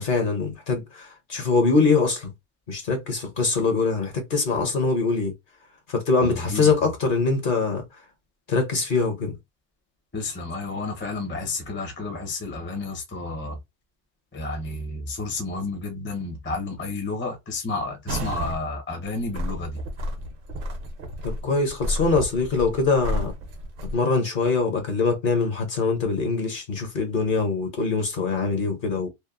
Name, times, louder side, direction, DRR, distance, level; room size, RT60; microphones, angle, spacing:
voice 1, 0.0-2.3 2.7-5.3 5.9-7.8 8.5-9.4 21.2-23.3 23.9-29.1, left 4 dB, 50° left, 0.8 m, -23 dB
voice 2, 6.2-6.7 10.1-13.6 14.3-19.8, left 3 dB, 15° left, 0.5 m, -31 dB
sound 1, 18.1-18.6 19.0-24.0, equal, 60° right, 0.8 m, -31 dB
2.8 x 2.0 x 2.4 m
omnidirectional pair, 1.2 m